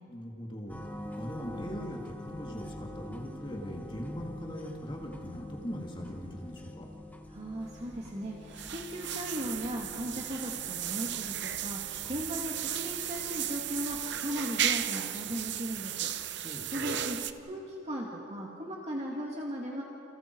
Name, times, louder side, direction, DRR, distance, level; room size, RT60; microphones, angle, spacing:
voice 1, 0.1-6.9 16.4-16.7, equal, 25° left, 0 dB, 2.3 m, -40 dB
sound 1, 0.7-14.8, left 1 dB, 10° left, 1.3 m, -46 dB
voice 2, 7.3-16.5 16.7-19.9, equal, 35° right, -2 dB, 2.3 m, -37 dB
sound 2, 7.7-17.3, right 11 dB, 65° right, 0.8 m, -35 dB
30.0 x 29.5 x 4.7 m, 2.8 s
head